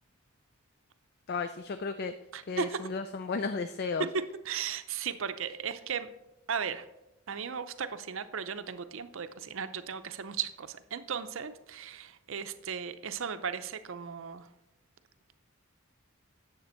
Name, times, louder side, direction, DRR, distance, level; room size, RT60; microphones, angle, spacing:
voice 1, 1.3-2.1 2.5-4.1, left 4 dB, 45° left, 10 dB, 0.4 m, -34 dB
voice 2, 2.3-2.9 4.0-6.1 6.5-6.9 7.3-14.5, right 6 dB, 60° right, 11 dB, 0.6 m, -36 dB
9.5 x 7.4 x 4.4 m, 0.92 s
head